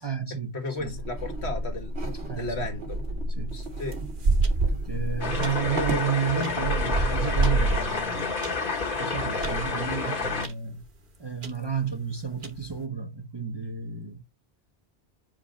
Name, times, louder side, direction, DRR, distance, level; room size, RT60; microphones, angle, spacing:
voice 1, 0.0-1.0 2.3-2.7 3.4-3.6 4.7-8.3 9.0-10.8 11.2-14.2, right 6 dB, 30° right, 0.6 m, -31 dB
voice 2, 0.5-1.9 2.3-3.0 3.5-4.0, left 3 dB, 85° left, 1.8 m, -34 dB
sound 1, 0.8-6.1, right 1 dB, 85° right, 2.2 m, -33 dB
sound 2, 3.5-5.0 5.4-5.7 6.4-8.5 9.0-9.1 9.4-9.7 10.4-10.5 10.8-10.9 11.4-11.5 12.3-12.8, right 3 dB, 50° right, 1.1 m, -26 dB
sound 3, 5.2-10.5, left 4 dB, 55° left, 1.5 m, -29 dB
5.3 x 5.1 x 4.0 m
omnidirectional pair, 1.1 m